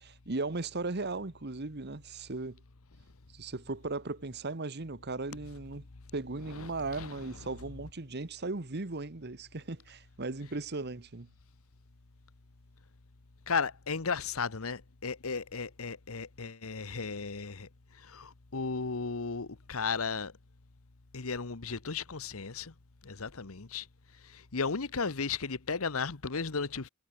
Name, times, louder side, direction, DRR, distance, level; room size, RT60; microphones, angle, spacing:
voice 1, 0.0-2.6 3.3-5.8 6.1-11.3, right 3 dB, 50° right, 1.3 m, -37 dB
voice 2, 13.5-17.7 18.0-20.3 21.1-22.7 23.0-23.9 24.3-26.9, left 5 dB, 75° left, 1.2 m, -35 dB
head